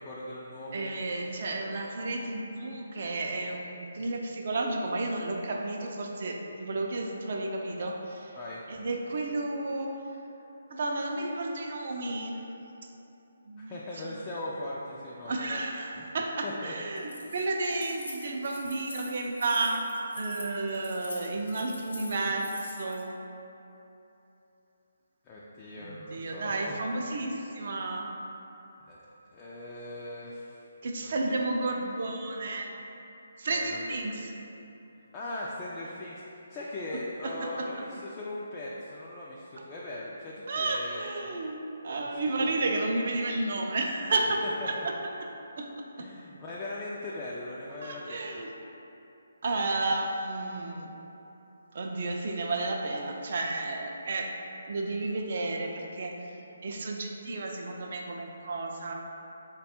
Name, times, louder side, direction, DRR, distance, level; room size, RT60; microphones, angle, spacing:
voice 1, 0.0-0.9 1.6-1.8 8.4-8.6 13.6-15.6 16.0-16.1 16.4-16.7 25.2-26.7 28.8-29.0 29.3-30.7 31.0-31.3 33.5-33.9 35.1-41.1 42.4-42.5 44.6-44.9 46.0-48.4, left 1 dB, 20° left, -6 dB, 0.3 m, -40 dB
voice 2, 0.7-8.4 8.7-9.9 10.7-12.5 13.5-14.2 15.3-19.8 20.2-23.1 25.8-28.1 30.8-32.7 33.4-34.3 37.2-37.7 40.5-44.9 45.6-45.7 46.0-46.1 47.8-48.5 49.4-50.9 51.7-54.3 54.7-56.3 56.6-58.9, right 2 dB, 55° right, 1 dB, 0.4 m, -32 dB
Keys jangling, 17.0-23.0, left 2 dB, 85° left, 0.8 m, -44 dB
3.4 x 2.2 x 4.2 m, 3.0 s
figure-of-eight pair, 150°, 0 cm